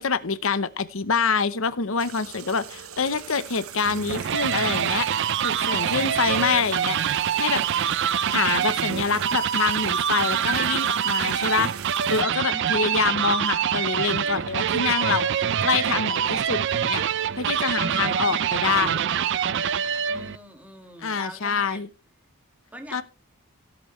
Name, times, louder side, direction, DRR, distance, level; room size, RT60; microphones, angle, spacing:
voice 1, 0.0-5.1 5.4-7.0 7.3-7.6 8.3-11.7 12.1-17.0 17.4-19.0 21.0-21.9 22.9-23.0, left 5 dB, 70° left, 0.9 m, -26 dB
sound 1, 2.0-12.2, right 10 dB, 85° right, 0.8 m, -40 dB
sound 2, 3.8-20.4, right 9 dB, 55° right, 0.4 m, -25 dB
voice 2, 5.6-6.3 12.5-13.1 17.7-18.4 20.0-21.8 22.7-23.0, equal, 5° right, 2.2 m, -42 dB
16.5 x 8.2 x 3.2 m
head